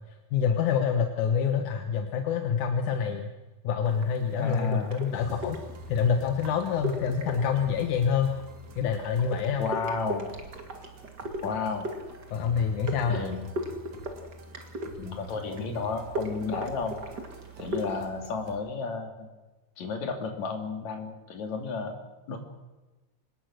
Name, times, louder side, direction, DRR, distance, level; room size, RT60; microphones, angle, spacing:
voice 1, 0.3-3.3 3.6-5.6 5.9-8.4 8.8-9.7 12.3-13.2, left 7 dB, 85° left, 5 dB, 2.8 m, -26 dB
sound 1, 3.8-18.1, right 1 dB, 35° right, 2.8 m, -39 dB
voice 2, 4.4-4.9 9.6-10.3 11.4-11.9 13.1-13.4 15.0-17.0 17.6-19.3 19.8-22.0 22.3-22.4, left 4 dB, 70° left, 4 dB, 4.1 m, -32 dB
sound 2, 5.1-18.6, right 2 dB, 75° right, 3.4 m, -47 dB
25.5 x 20.5 x 6.5 m, 1.2 s
omnidirectional pair, 3.4 m